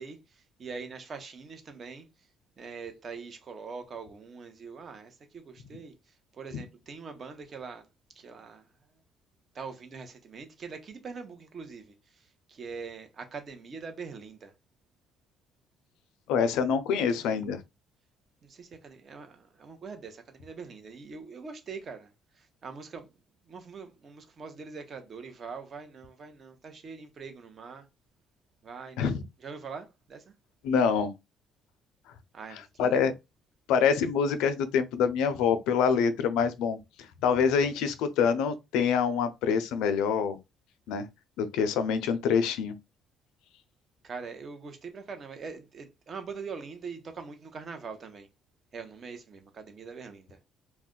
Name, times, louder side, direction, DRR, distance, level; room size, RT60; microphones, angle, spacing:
voice 1, 0.0-2.1 2.6-7.9 8.2-8.7 9.5-14.5 18.4-22.1 22.3-23.1 23.4-27.9 28.6-29.1 29.4-30.3 32.3-33.1 44.0-48.3 48.7-50.4, right 5 dB, 40° right, 0.7 m, -43 dB
voice 2, 16.3-17.6 29.0-29.2 30.6-31.1 32.8-33.1 33.7-36.8 37.2-40.4 40.9-41.1 41.4-42.7, left 6 dB, 90° left, 0.4 m, -25 dB
2.4 x 2.1 x 3.7 m
cardioid pair, 115°, 0 cm